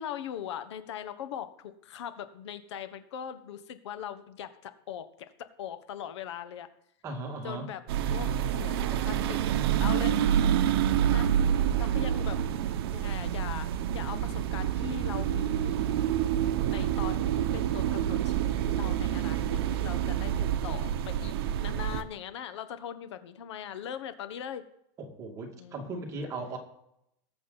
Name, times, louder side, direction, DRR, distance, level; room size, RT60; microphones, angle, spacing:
voice 1, 0.0-6.7 7.4-7.8 8.1-9.4 9.8-10.2 11.1-11.3 11.8-12.4 12.9-16.0 16.7-24.6 25.6-25.9, left 9 dB, 85° left, 11 dB, 1.3 m, -40 dB
voice 2, 7.0-7.7 25.0-26.6, right 2 dB, 20° right, 2 dB, 2.3 m, -37 dB
sound 1, 7.9-22.0, right 10 dB, 60° right, 0.9 m, -28 dB
19.5 x 7.7 x 4.1 m, 0.79 s
supercardioid pair, 170°, 14 cm